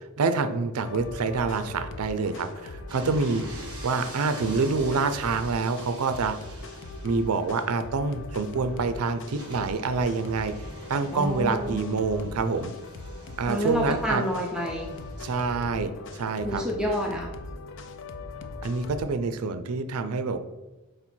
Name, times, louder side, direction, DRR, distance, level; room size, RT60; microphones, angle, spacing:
voice 1, 0.2-3.4 3.8-6.4 7.0-10.5 10.9-12.7 13.4-14.2 15.2-16.6 18.6-20.4, right 4 dB, 80° right, 10 dB, 0.5 m, -27 dB
sound 1, 0.8-19.0, left 3 dB, 60° left, 0.5 m, -40 dB
sound 2, 2.9-15.4, right 2 dB, 20° right, 1.9 m, -47 dB
voice 2, 11.1-11.8 13.5-14.9 16.4-17.3, equal, 5° right, -1 dB, 0.5 m, -28 dB
5.0 x 4.2 x 4.4 m, 1.1 s
head